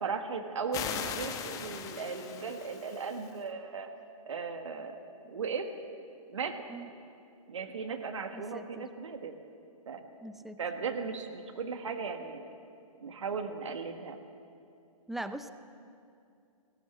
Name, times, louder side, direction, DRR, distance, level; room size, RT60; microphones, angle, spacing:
voice 1, 0.0-3.9 4.3-5.0 5.3-5.7 6.3-6.6 7.5-9.3 9.9-10.0 10.6-12.4 13.0-14.2, right 5 dB, 55° right, 5 dB, 1.6 m, -37 dB
sound 1, 0.7-3.3, left 7 dB, 20° left, 1.2 m, -39 dB
voice 2, 8.3-8.9 10.2-10.6 15.1-15.5, right 1 dB, ahead, 10 dB, 0.5 m, -41 dB
18.0 x 17.5 x 8.2 m, 2.5 s
figure-of-eight pair, 125°, 18 cm